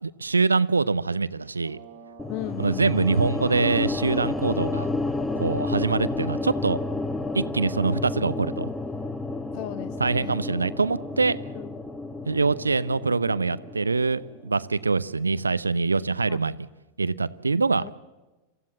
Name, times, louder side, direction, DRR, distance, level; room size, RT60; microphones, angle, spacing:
voice 1, 0.0-1.8 2.6-4.9 5.3-6.8 7.3-8.7 10.0-11.4 12.3-16.7 17.0-17.8, right 4 dB, 80° right, 0.7 m, -24 dB
sound 1, 1.5-16.7, right 6 dB, 45° right, 1.6 m, -52 dB
sound 2, 2.2-14.4, left 2 dB, 10° left, 1.1 m, -31 dB
voice 2, 2.3-2.9 9.5-10.5 11.5-11.7 16.3-16.4 17.8-17.9, left 17 dB, 45° left, 0.6 m, -36 dB
27.5 x 15.5 x 7.5 m
figure-of-eight pair, 90°, 0 cm